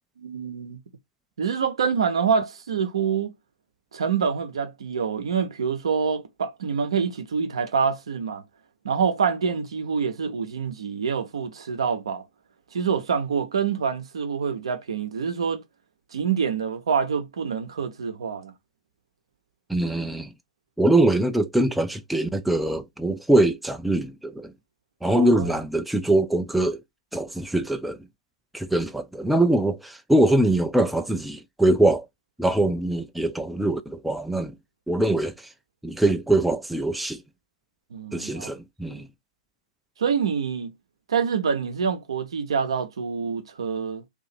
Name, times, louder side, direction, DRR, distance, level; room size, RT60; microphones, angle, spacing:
voice 1, 0.2-0.8 1.4-3.3 3.9-8.4 8.8-12.3 12.7-15.6 16.1-18.5 25.1-25.5 37.9-38.5 38.9-39.0 40.0-40.7 41.1-44.0, right 6 dB, 65° right, 0.7 m, -26 dB
voice 2, 19.7-20.3 20.8-24.5 25.0-26.8 27.1-28.0 28.5-32.1 32.4-34.6 34.9-35.5 35.8-37.2 38.1-39.1, right 1 dB, ahead, 0.3 m, -23 dB
2.7 x 2.5 x 4.1 m
figure-of-eight pair, 110°, 3 cm